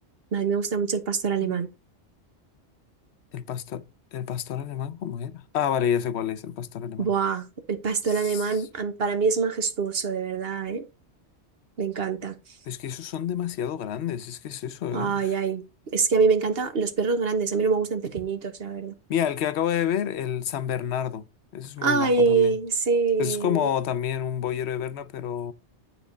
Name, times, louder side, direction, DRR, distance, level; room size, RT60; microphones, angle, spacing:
voice 1, 0.3-1.7 7.0-10.9 11.8-12.4 14.9-15.6 15.9-18.9 21.8-23.7, right 5 dB, 60° right, 1.3 m, -25 dB
voice 2, 3.3-3.8 4.1-7.1 8.1-8.6 12.7-15.4 19.1-21.3 21.5-22.6 23.2-25.5, left 9 dB, 75° left, 0.9 m, -29 dB
9.5 x 3.8 x 5.0 m
omnidirectional pair, 1.1 m